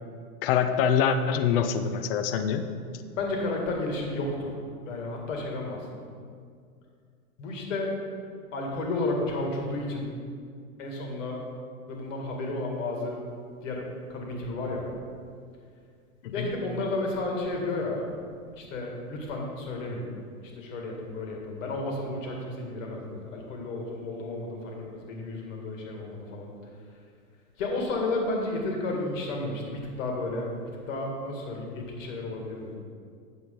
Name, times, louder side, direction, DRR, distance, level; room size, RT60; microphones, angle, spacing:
voice 1, 0.4-2.7 16.2-16.5, left 7 dB, 40° left, 9 dB, 0.4 m, -25 dB
voice 2, 3.1-4.5 4.8-6.1 7.4-7.9 8.5-10.1 10.8-11.5 11.9-13.2 13.6-14.9 16.3-18.1 18.6-20.1 20.5-26.5 27.6-32.7, left 2 dB, 60° left, 0 dB, 2.2 m, -32 dB
8.8 x 6.9 x 3.8 m, 2.2 s
hypercardioid pair, 140°, 44 cm